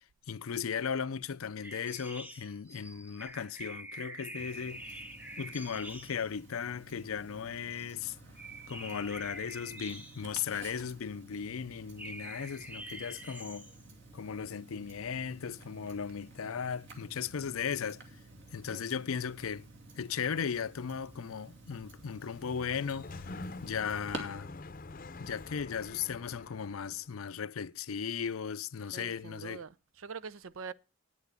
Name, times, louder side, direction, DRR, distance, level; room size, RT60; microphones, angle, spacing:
voice 1, 0.0-4.8 5.4-8.2 8.7-13.7 14.1-18.0 18.5-19.7 20.0-23.1 23.6-24.5 25.2-29.6, left 7 dB, 85° left, 0.5 m, -37 dB
sound 1, 1.6-6.3 7.8-8.0 8.4-10.5 12.0-13.8, right 1 dB, 10° right, 0.8 m, -46 dB
Tick-tock, 4.4-24.2, right 2 dB, 60° right, 2.4 m, -52 dB
Sliding door, 21.9-27.1, left 3 dB, 40° left, 0.6 m, -46 dB
voice 2, 28.9-30.7, right 5 dB, 75° right, 0.6 m, -44 dB
9.4 x 8.3 x 6.7 m
head